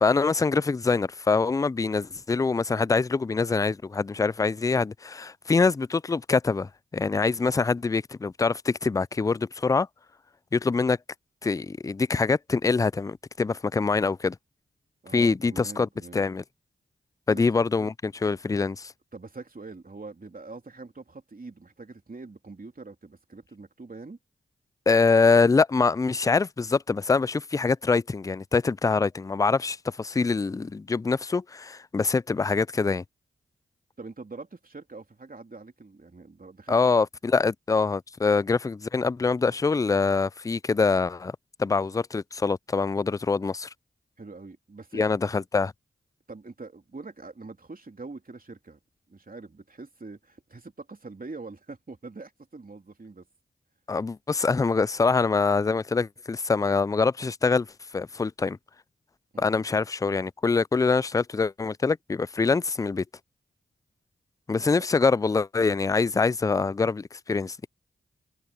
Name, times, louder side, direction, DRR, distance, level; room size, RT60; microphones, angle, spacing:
voice 1, 0.0-9.9 10.5-11.0 11.4-14.4 15.1-16.4 17.3-18.9 24.9-33.0 36.7-41.3 41.6-43.7 44.9-45.7 53.9-57.7 57.9-58.6 59.4-63.0 64.5-67.6, left 4 dB, 15° left, 0.3 m, -24 dB
voice 2, 15.0-16.2 17.3-17.5 19.1-24.2 34.0-36.8 44.2-45.0 46.3-48.8 49.1-53.3 59.3-59.7 64.7-64.8, right 3 dB, 45° right, 3.2 m, -43 dB
cardioid pair, 40°, 21 cm